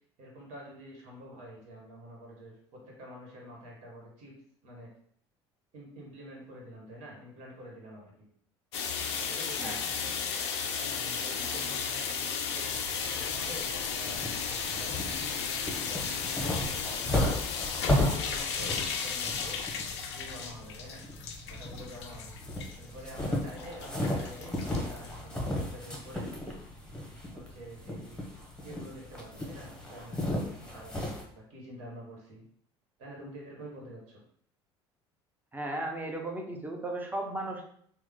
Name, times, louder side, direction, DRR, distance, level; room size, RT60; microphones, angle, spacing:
voice 1, 0.2-4.3 4.6-4.9 5.7-8.3 9.2-10.0 10.8-12.7 13.0-17.2 17.8-19.6 20.0-21.0 21.5-22.3 22.8-26.3 27.3-28.2 28.6-32.4 33.0-34.2, equal, 65° right, -2 dB, 1.3 m, -47 dB
sound 1, 8.7-25.6, left 6 dB, 80° left, 0.4 m, -35 dB
sound 2, 12.7-31.2, left 1 dB, 5° left, 1.0 m, -35 dB
voice 2, 35.5-37.6, right 1 dB, 15° right, 2 dB, 0.7 m, -36 dB
3.0 x 2.1 x 3.7 m, 0.64 s
hypercardioid pair, 65°, 14 cm